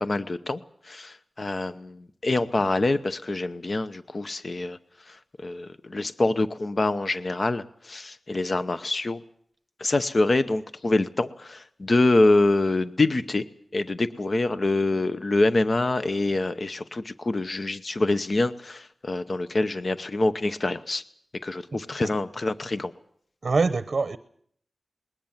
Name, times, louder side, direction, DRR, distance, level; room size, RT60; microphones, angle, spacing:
voice 1, 0.0-4.8 5.1-9.2 9.8-13.4 13.7-21.0 21.4-22.9, left 2 dB, 45° left, 0.8 m, -25 dB
voice 2, 21.7-22.1 23.4-24.2, right 4 dB, 55° right, 0.8 m, -25 dB
21.0 x 18.5 x 7.3 m
wide cardioid pair, 80°, 0 cm